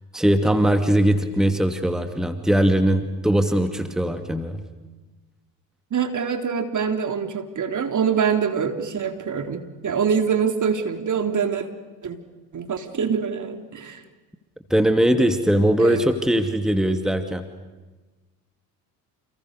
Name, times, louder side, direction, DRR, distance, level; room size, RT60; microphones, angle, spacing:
voice 1, 0.1-4.6 14.7-17.4, right 1 dB, ahead, 7 dB, 2.4 m, -20 dB
voice 2, 5.9-11.7 12.0-12.2 12.5-14.0 15.8-16.0, right 6 dB, 40° right, 6 dB, 3.5 m, -24 dB
30.0 x 29.0 x 6.7 m, 1.2 s
hypercardioid pair, 65°, 47 cm